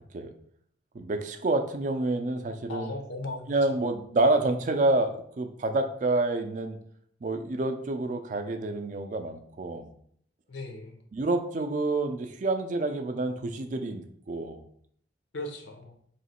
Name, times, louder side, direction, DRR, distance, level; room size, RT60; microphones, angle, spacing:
voice 1, 0.9-2.9 3.5-6.8 7.2-9.9 11.1-14.6, right 2 dB, 40° right, 7 dB, 0.4 m, -28 dB
voice 2, 2.7-3.8 10.5-11.0 15.3-16.0, left 2 dB, 80° left, 4 dB, 0.7 m, -38 dB
3.1 x 2.9 x 4.2 m, 0.64 s
head